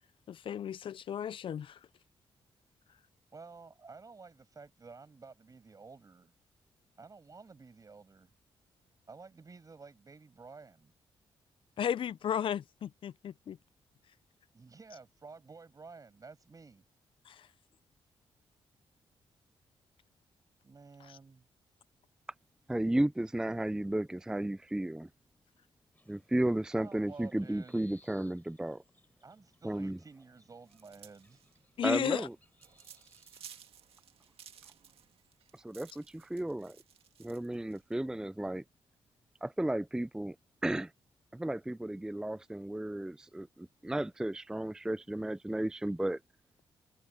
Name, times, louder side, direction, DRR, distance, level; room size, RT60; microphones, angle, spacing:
voice 1, 0.3-1.8 11.8-13.6 17.3-17.5 21.1-21.2 31.8-32.3, left 9 dB, 55° left, 0.4 m, -34 dB
voice 2, 3.3-6.3 7.0-8.3 9.1-10.9 14.5-16.8 20.6-21.4 26.8-27.7 29.2-31.4, right 4 dB, 35° right, 6.0 m, -52 dB
voice 3, 22.7-25.1 26.1-28.8 29.6-30.0 31.8-32.3 35.5-36.8 37.2-38.6 39.4-40.4 40.6-40.9 41.3-46.2, right 1 dB, 5° right, 0.4 m, -34 dB
sound 1, 25.9-33.6, left 2 dB, 15° left, 5.8 m, -67 dB
sound 2, 30.7-37.9, right 8 dB, 70° right, 2.1 m, -56 dB
open air
cardioid pair, 85°, 10 cm